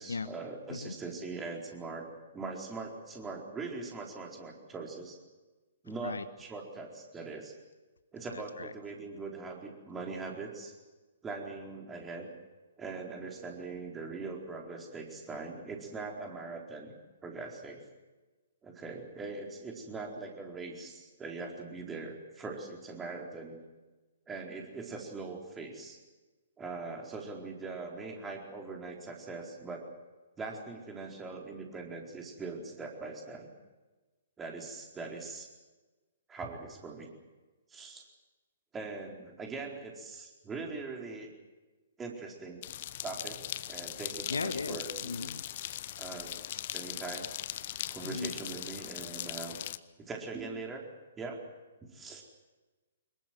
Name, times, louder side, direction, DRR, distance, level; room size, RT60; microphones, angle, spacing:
voice 1, 0.0-2.1 2.3-5.2 5.8-7.5 8.1-10.8 11.2-12.3 12.8-16.9 17.2-17.8 18.6-23.6 24.3-26.0 26.6-29.8 30.4-33.5 34.4-35.5 36.3-37.1 37.7-38.0 38.7-41.3 42.0-42.6 43.0-43.4 43.7-45.3 46.0-46.3 46.7-47.3 47.9-49.6 50.0-50.8 51.2-51.4 51.8-52.2, right 3 dB, 15° right, 1 dB, 4.4 m, -41 dB
voice 2, 8.3-8.7 44.3-45.4 48.0-48.4, left 4 dB, 70° left, 13 dB, 1.2 m, -37 dB
sound 1, 42.6-49.8, left 12 dB, 45° left, 0.9 m, -40 dB
25.5 x 22.0 x 7.8 m, 1.2 s
figure-of-eight pair, 120°, 0 cm